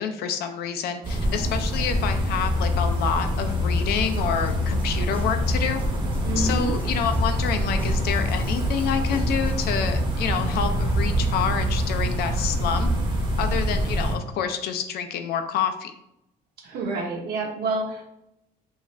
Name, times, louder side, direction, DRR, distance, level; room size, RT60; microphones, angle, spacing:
voice 1, 0.0-5.8 6.4-12.9 13.4-15.9, left 7 dB, 70° left, 7 dB, 0.4 m, -28 dB
sound 1, 1.0-14.1, right 1 dB, 25° right, 0.7 m, -26 dB
sound 2, 1.9-13.8, left 7 dB, 50° left, 0.8 m, -32 dB
sound 3, 3.9-9.6, left 1 dB, 10° left, 0.5 m, -37 dB
voice 2, 6.2-6.8 16.6-18.0, right 2 dB, 65° right, 0 dB, 0.8 m, -28 dB
2.4 x 2.4 x 3.1 m, 0.82 s
cardioid pair, 110°, 17 cm